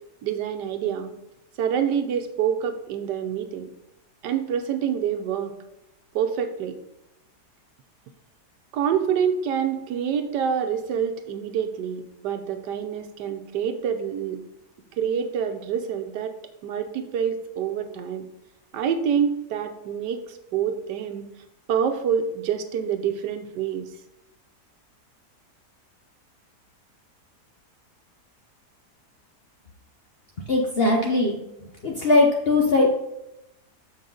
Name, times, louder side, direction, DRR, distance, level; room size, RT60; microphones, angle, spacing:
voice 1, 0.2-1.1 1.6-3.7 4.2-5.5 6.1-6.8 8.7-14.4 15.0-16.4 16.6-18.3 18.7-21.3 21.7-23.9, right 8 dB, 85° right, 7 dB, 1.4 m, -26 dB
voice 2, 30.4-32.9, left 2 dB, 50° left, 0 dB, 0.8 m, -21 dB
7.0 x 5.6 x 3.8 m, 0.88 s
omnidirectional pair, 1.8 m